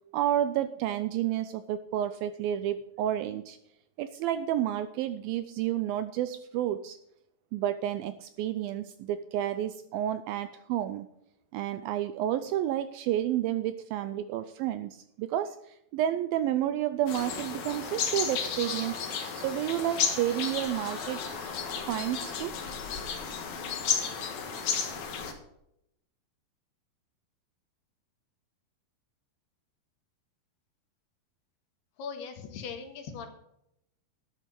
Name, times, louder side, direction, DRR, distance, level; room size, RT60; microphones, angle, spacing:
voice 1, 0.1-3.6 4.0-7.0 7.5-11.1 11.5-19.0 19.4-21.3 21.8-22.5, right 11 dB, 80° right, 12 dB, 2.1 m, -30 dB
sound 1, 17.1-25.3, left 6 dB, 55° left, 2.3 m, -33 dB
Piano, 18.6-20.8, right 6 dB, 10° right, 5.0 m, -53 dB
sound 2, 19.2-21.6, right 2 dB, 30° right, 2.4 m, -52 dB
voice 2, 32.0-33.3, left 6 dB, 80° left, 5 dB, 3.6 m, -39 dB
12.5 x 8.4 x 5.3 m, 0.78 s
omnidirectional pair, 4.6 m